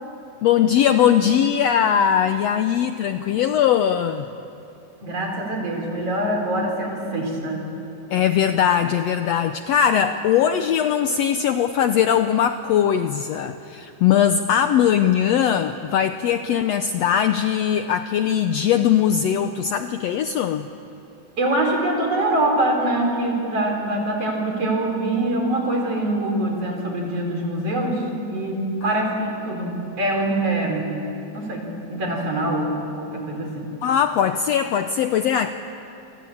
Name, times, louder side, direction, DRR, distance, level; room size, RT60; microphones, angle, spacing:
voice 1, 0.4-4.3 8.1-20.7 28.8-29.3 33.8-35.5, left 9 dB, 75° left, 8 dB, 1.5 m, -20 dB
voice 2, 5.0-7.7 21.4-30.9 31.3-33.7, right 1 dB, 45° right, 1 dB, 5.3 m, -24 dB
28.5 x 24.5 x 8.6 m, 2.8 s
omnidirectional pair, 3.7 m